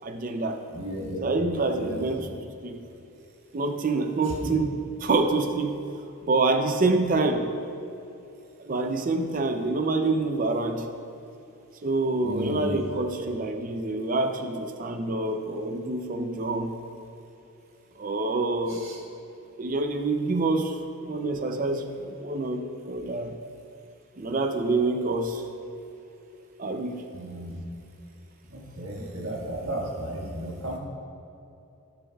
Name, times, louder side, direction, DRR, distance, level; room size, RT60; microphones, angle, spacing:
voice 1, 0.0-0.6 1.2-2.8 3.5-5.8 6.3-7.5 8.7-10.9 11.8-16.8 18.0-18.9 19.6-23.4 24.2-25.4 26.6-27.0, right 3 dB, 35° right, 6 dB, 0.5 m, -27 dB
voice 2, 0.7-1.2 1.8-2.0 4.4-4.5 12.2-12.8 18.8-19.0 27.1-27.6 28.5-30.8, equal, 60° right, -3 dB, 1.7 m, -34 dB
18.0 x 6.7 x 2.3 m, 2.9 s
head